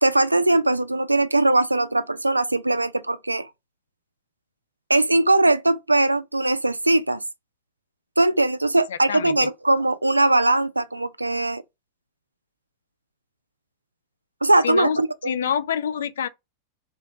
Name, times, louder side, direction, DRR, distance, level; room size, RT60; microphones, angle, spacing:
voice 1, 0.0-3.5 4.9-7.2 8.2-11.6 14.4-15.3, right 2 dB, 85° right, 0.3 m, -20 dB
voice 2, 8.9-9.4 14.6-16.3, left 8 dB, 65° left, 0.3 m, -27 dB
3.1 x 2.7 x 3.3 m
figure-of-eight pair, 90°, 0 cm